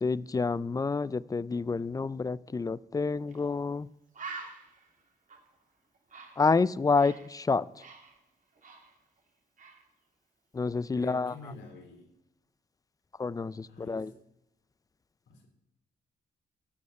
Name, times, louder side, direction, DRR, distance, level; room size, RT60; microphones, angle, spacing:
voice 1, 0.0-3.9 6.4-7.7 10.5-11.3 13.2-14.1, left 4 dB, 20° left, 0.4 m, -28 dB
Bird, 3.3-3.4 3.8-3.9 4.1-7.3 7.6-9.3 9.6-9.9, right 4 dB, 45° right, 2.6 m, -46 dB
voice 2, 11.0-12.1 13.7-14.1 15.3-15.5, left 3 dB, 85° left, 3.2 m, -46 dB
15.0 x 5.5 x 9.4 m
cardioid pair, 100°, 18 cm